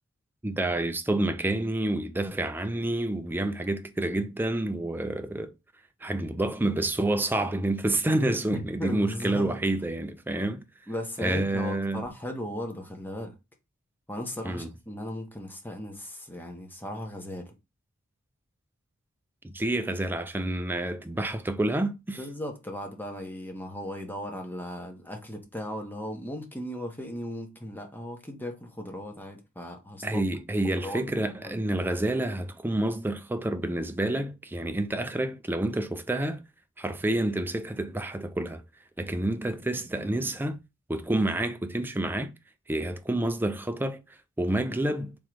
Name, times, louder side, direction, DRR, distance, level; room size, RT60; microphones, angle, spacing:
voice 1, 0.4-5.5 6.0-10.6 11.2-12.1 14.5-14.7 19.4-22.2 30.0-36.4 36.8-38.6 39.0-40.6 40.9-42.3 42.7-44.0 44.4-45.2, right 1 dB, 10° right, 0.4 m, -28 dB
voice 2, 8.5-9.6 10.9-13.3 14.1-17.5 22.2-30.2 30.6-31.6, left 1 dB, 10° left, 0.9 m, -37 dB
3.7 x 3.1 x 4.6 m
head